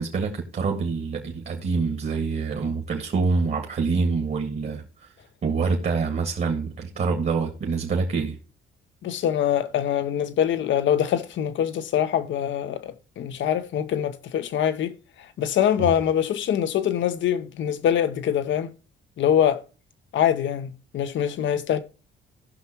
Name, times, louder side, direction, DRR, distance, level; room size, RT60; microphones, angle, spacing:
voice 1, 0.0-4.8 5.4-8.3 15.8-15.9, right 4 dB, 50° right, 1.7 m, -26 dB
voice 2, 9.0-14.9 15.4-18.7 19.2-19.6 20.1-21.8, left 9 dB, 70° left, 0.9 m, -24 dB
17.0 x 5.8 x 3.0 m
cardioid pair, 90°, 20 cm